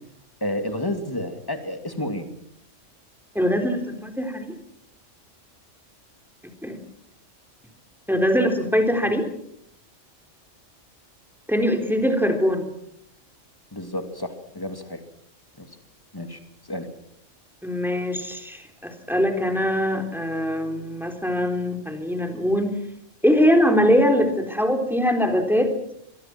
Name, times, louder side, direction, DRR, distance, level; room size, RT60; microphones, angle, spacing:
voice 1, 0.4-2.2 13.7-15.0 15.6-15.8 16.1-16.4 16.7-16.9, left 1 dB, 15° left, 6 dB, 2.7 m, -30 dB
voice 2, 3.4-4.5 6.6-6.8 8.1-9.3 11.5-12.7 17.6-22.7 23.2-25.7, equal, ahead, 4 dB, 3.7 m, -22 dB
25.0 x 22.5 x 6.1 m, 0.70 s
omnidirectional pair, 1.3 m